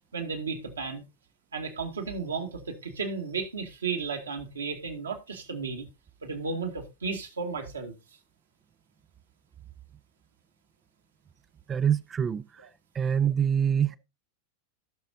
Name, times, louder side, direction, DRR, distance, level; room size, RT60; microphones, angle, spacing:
voice 1, 0.1-1.0 1.5-5.9 6.2-7.9, right 4 dB, 70° right, 2.1 m, -34 dB
voice 2, 11.7-12.7 12.9-14.0, right 8 dB, 20° right, 0.4 m, -25 dB
17.5 x 6.4 x 2.7 m
figure-of-eight pair, 90°, 0 cm